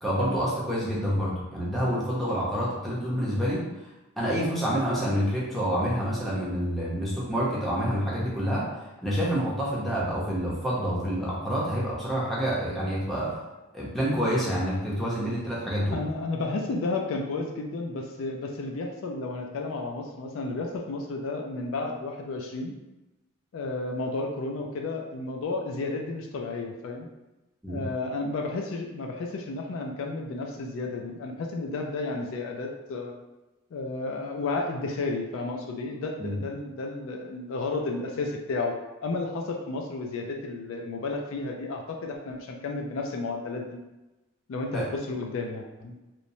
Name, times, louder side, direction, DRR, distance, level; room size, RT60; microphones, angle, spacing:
voice 1, 0.0-3.6 4.2-8.7 9.0-13.3 13.7-16.0 27.6-27.8 36.2-36.4 44.7-44.9, equal, ahead, -7 dB, 0.6 m, -27 dB
voice 2, 15.9-22.7 23.5-27.1 27.7-33.1 33.7-38.7 39.0-43.8 44.5-45.9, left 3 dB, 60° left, 2 dB, 0.3 m, -32 dB
2.9 x 2.0 x 2.6 m, 1.1 s
head